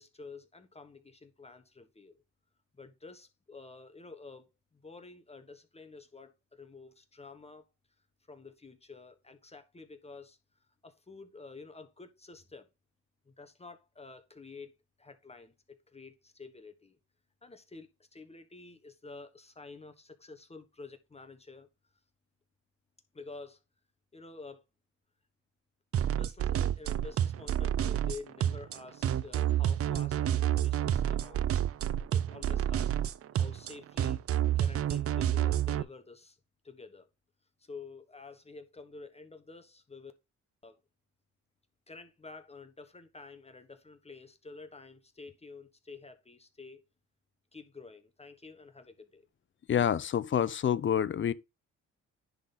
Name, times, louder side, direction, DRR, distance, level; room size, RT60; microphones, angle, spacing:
voice 1, 0.0-2.2 2.7-7.6 8.3-10.4 10.8-12.7 13.3-14.7 15.0-17.0 17.4-21.7 23.1-23.6 24.1-24.6 26.1-31.5 32.1-32.9 33.3-34.2 34.5-36.4 36.6-37.1 37.6-40.1 40.6-40.8 41.9-46.8 47.5-49.2, left 4 dB, 20° left, 1.2 m, -49 dB
sound 1, 25.9-35.8, right 11 dB, 50° right, 0.5 m, -29 dB
voice 2, 49.7-51.3, left 9 dB, 40° left, 0.6 m, -27 dB
10.5 x 3.9 x 4.1 m
cardioid pair, 90°, 30 cm